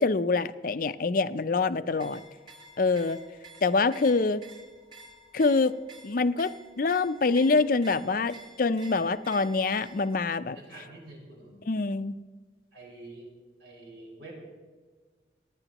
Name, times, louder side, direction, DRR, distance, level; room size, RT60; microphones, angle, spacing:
voice 1, 0.0-2.2 2.8-3.2 3.6-4.4 5.3-5.8 6.0-10.6 11.7-12.2, left 3 dB, 50° left, 13 dB, 0.5 m, -25 dB
sound 1, 1.9-10.2, right 2 dB, 25° right, 2.1 m, -51 dB
voice 2, 10.5-11.6 12.7-13.3 13.6-14.3, right 2 dB, 85° right, -2 dB, 4.9 m, -47 dB
26.5 x 9.9 x 3.0 m, 1.4 s
head